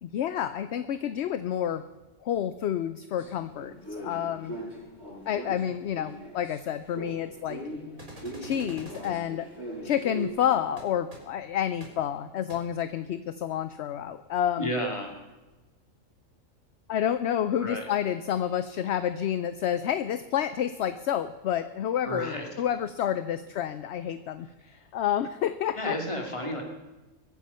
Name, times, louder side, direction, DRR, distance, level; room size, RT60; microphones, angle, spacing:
voice 1, 0.0-1.8 2.2-4.5 5.3-7.6 8.4-9.5 9.8-14.7 16.9-26.0, left 10 dB, 60° left, 13 dB, 0.8 m, -29 dB
sound 1, 3.2-6.6 6.9-10.3, equal, 30° right, 7.1 m, -40 dB
sound 2, 8.0-9.1 10.8-10.9 11.1-11.2 11.8-11.9 12.5-12.6, right 1 dB, 80° right, 4.4 m, -45 dB
voice 2, 14.6-15.2 17.6-17.9 22.0-22.5 24.6-24.8 25.8-26.6, equal, 20° left, 1 dB, 2.5 m, -32 dB
22.0 x 8.4 x 5.6 m, 1.1 s
omnidirectional pair, 1.4 m